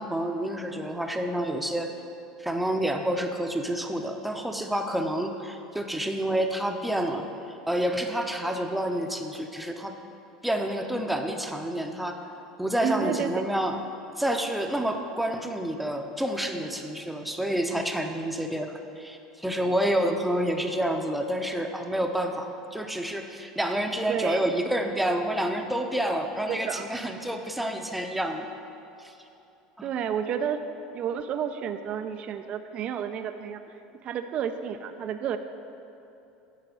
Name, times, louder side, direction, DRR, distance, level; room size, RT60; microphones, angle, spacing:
voice 1, 0.0-1.9 2.4-7.3 7.7-9.9 10.4-12.2 12.6-13.8 14.2-28.5 29.0-29.1, right 1 dB, 5° right, 4 dB, 0.7 m, -28 dB
voice 2, 12.8-13.5 24.1-24.5 26.5-26.9 29.8-30.6 30.9-35.4, right 8 dB, 45° right, 9 dB, 0.4 m, -31 dB
9.4 x 4.1 x 6.3 m, 2.8 s
hypercardioid pair, 75°, 3 cm